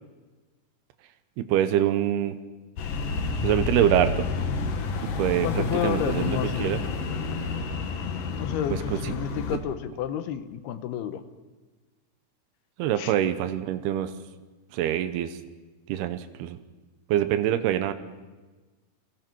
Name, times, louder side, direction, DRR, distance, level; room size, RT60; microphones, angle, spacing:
voice 1, 1.4-2.4 3.4-4.3 5.2-6.8 8.9-9.1 12.8-14.1 14.7-15.4 15.9-16.6 17.1-17.9, right 11 dB, 85° right, 10 dB, 3.0 m, -25 dB
sound 1, 2.8-9.6, left 4 dB, 65° left, 3.2 m, -29 dB
voice 2, 5.4-6.7 8.4-11.3 13.0-13.1, left 10 dB, 85° left, 10 dB, 3.0 m, -31 dB
30.0 x 22.5 x 4.6 m, 1.2 s
omnidirectional pair, 4.5 m